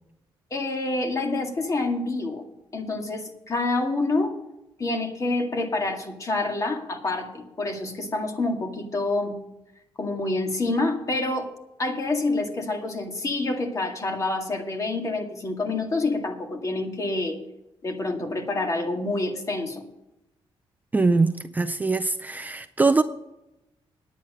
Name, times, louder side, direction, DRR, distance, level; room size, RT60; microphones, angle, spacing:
voice 1, 0.5-2.4 2.7-4.4 4.8-9.4 10.0-11.5 11.8-17.4 17.8-19.9, left 2 dB, 35° left, 4 dB, 2.0 m, -27 dB
voice 2, 20.9-23.0, right 3 dB, 15° right, 8 dB, 0.4 m, -22 dB
9.9 x 9.2 x 6.5 m, 0.90 s
cardioid pair, 115°, 10 cm